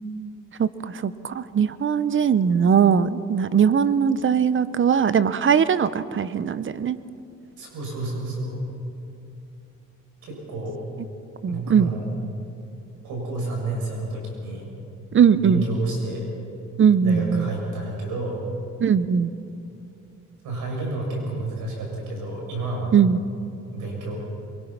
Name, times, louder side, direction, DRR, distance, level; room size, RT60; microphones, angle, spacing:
voice 1, 0.6-7.0 11.4-11.9 15.1-15.6 16.8-17.5 18.8-19.3 22.9-23.2, right 7 dB, 40° right, 15 dB, 0.8 m, -20 dB
voice 2, 7.6-8.6 10.2-10.8 11.5-12.1 13.0-14.6 15.4-16.3 17.0-18.3 20.4-22.9 23.7-24.2, right 2 dB, 85° right, -1 dB, 7.3 m, -30 dB
24.0 x 23.5 x 5.9 m, 2.6 s
cardioid pair, 90°, 30 cm